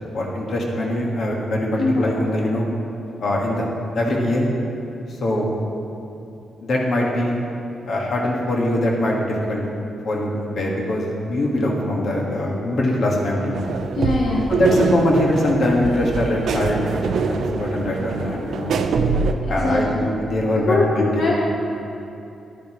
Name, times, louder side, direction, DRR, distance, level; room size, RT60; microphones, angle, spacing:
voice 1, 0.1-2.7 3.2-3.6 3.9-4.5 5.2-5.5 6.6-7.3 7.9-9.6 10.0-13.6 14.5-18.8 19.5-21.3, left 1 dB, 55° left, -2 dB, 1.6 m, -22 dB
sound 1, 13.5-19.3, right 5 dB, 70° right, 0.5 m, -24 dB
voice 2, 14.0-14.5 19.5-20.1 20.6-21.4, left 2 dB, 75° left, -4 dB, 1.1 m, -22 dB
11.5 x 10.0 x 3.1 m, 2.8 s
wide cardioid pair, 140°, 0 cm